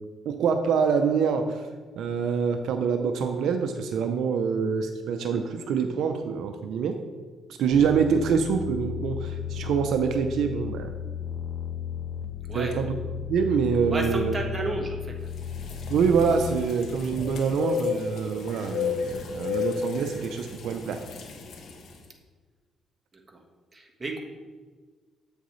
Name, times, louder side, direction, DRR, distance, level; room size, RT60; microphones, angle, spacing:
voice 1, 0.3-1.6 2.0-7.0 7.6-10.9 12.5-12.9 13.3-14.3 15.9-21.0, right 6 dB, 80° right, 6 dB, 0.5 m, -25 dB
sound 1, 7.7-16.6, left 9 dB, 40° left, 1.0 m, -35 dB
voice 2, 13.9-15.3 23.1-23.4 23.7-24.2, right 2 dB, 25° right, 0 dB, 1.3 m, -32 dB
sound 2, 15.3-22.0, left 6 dB, 70° left, 1.1 m, -33 dB
8.1 x 6.5 x 3.2 m, 1.4 s
cardioid pair, 90°, 0 cm